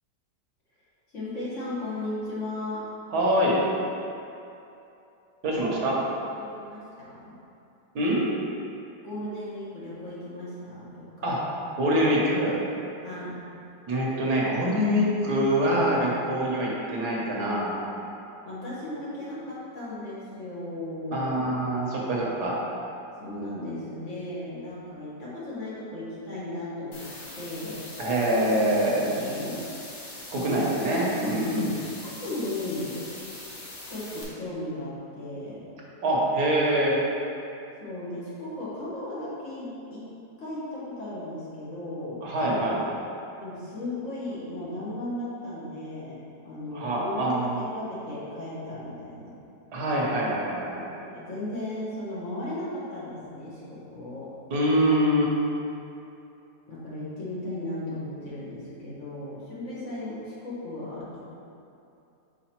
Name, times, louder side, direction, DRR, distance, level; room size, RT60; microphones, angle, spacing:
voice 1, 1.1-2.8 6.3-7.4 9.0-11.1 13.0-13.4 18.4-21.5 23.2-27.9 28.3-29.7 30.3-30.7 31.2-33.1 33.9-35.7 37.8-40.1 40.4-42.3 43.4-49.3 51.0-54.4 56.7-61.3, left 1 dB, 45° left, -9 dB, 1.8 m, -36 dB
voice 2, 3.1-3.6 5.4-6.0 7.9-8.3 11.2-11.4 11.8-12.6 13.9-17.7 21.1-22.6 28.0-29.0 30.3-31.7 36.0-36.9 42.2-42.8 46.7-47.6 49.7-50.8 54.5-55.3, right 1 dB, 70° right, -4 dB, 1.6 m, -24 dB
sound 1, 26.9-34.2, left 2 dB, 65° left, 1.7 m, -42 dB
5.0 x 4.9 x 4.4 m, 2.8 s
omnidirectional pair, 1.8 m